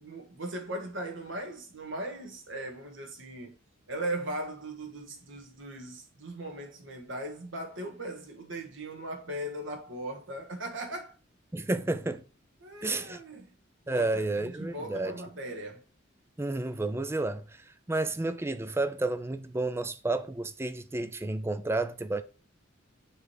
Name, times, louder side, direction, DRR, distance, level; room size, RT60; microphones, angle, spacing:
voice 1, 0.0-3.5 3.9-11.1 12.6-13.5 13.8-15.8, right 1 dB, 70° right, 1.7 m, -38 dB
voice 2, 11.5-12.2 12.8-13.2 13.9-15.1 16.4-22.2, right 2 dB, 15° right, 0.5 m, -31 dB
7.1 x 3.3 x 4.7 m
head